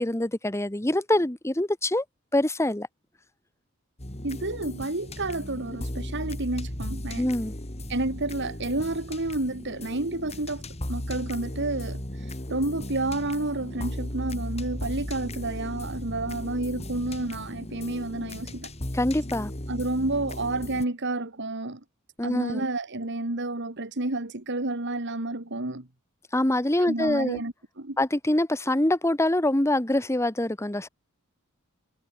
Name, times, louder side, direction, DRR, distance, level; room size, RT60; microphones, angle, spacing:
voice 1, 0.0-2.0 2.3-2.9 7.2-7.5 18.9-19.5 22.2-22.6 26.3-27.4 28.0-30.9, left 1 dB, 15° left, 1.3 m, -25 dB
sound 1, 4.0-20.8, left 1 dB, 30° left, 3.3 m, -36 dB
voice 2, 4.2-7.3 7.9-10.6 10.9-18.7 19.7-21.8 22.2-25.9 26.8-28.0, right 2 dB, 55° right, 2.4 m, -30 dB
head